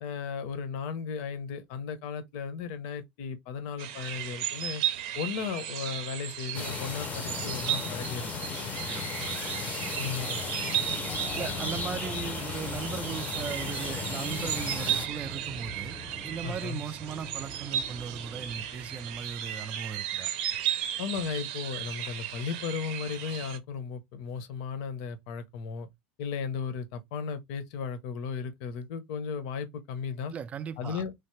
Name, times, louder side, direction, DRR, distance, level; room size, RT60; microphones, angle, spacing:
voice 1, 0.0-4.8 5.1-8.3 10.0-10.4 11.9-12.0 16.4-16.8 21.0-25.9 26.2-30.3 30.8-31.1, left 6 dB, 65° left, 0.7 m, -35 dB
sound 1, 3.8-23.6, right 11 dB, 70° right, 0.6 m, -35 dB
sound 2, 6.5-15.1, left 6 dB, 30° left, 0.6 m, -35 dB
voice 2, 8.9-9.6 11.3-16.0 16.2-20.3 30.3-31.0, right 7 dB, 25° right, 0.3 m, -38 dB
sound 3, 10.5-19.5, right 1 dB, 10° right, 0.7 m, -45 dB
3.2 x 2.0 x 3.1 m
supercardioid pair, 130°, 5 cm